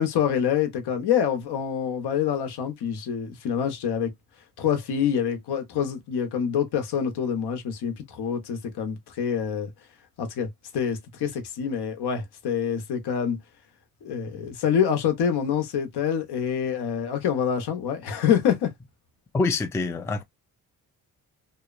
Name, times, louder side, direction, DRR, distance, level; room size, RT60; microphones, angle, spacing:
voice 1, 0.0-4.1 4.6-9.7 10.2-13.4 14.0-18.7, left 8 dB, 75° left, 0.8 m, -26 dB
voice 2, 19.3-20.2, left 3 dB, 10° left, 0.3 m, -25 dB
2.8 x 2.0 x 2.3 m
cardioid pair, 95°, 40 cm